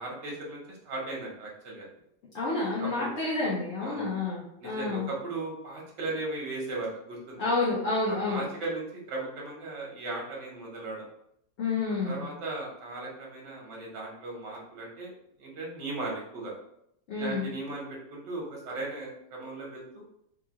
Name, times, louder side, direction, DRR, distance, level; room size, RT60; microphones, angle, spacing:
voice 1, 0.0-1.9 2.8-3.1 3.8-4.1 4.6-7.5 8.2-11.1 11.9-15.1 15.4-16.5 17.2-20.0, right 2 dB, 80° right, -2 dB, 1.7 m, -37 dB
voice 2, 2.3-5.1 7.4-8.4 11.6-12.3 17.1-17.4, left 3 dB, 55° left, -7 dB, 0.9 m, -29 dB
4.0 x 2.5 x 2.8 m, 0.74 s
omnidirectional pair, 1.9 m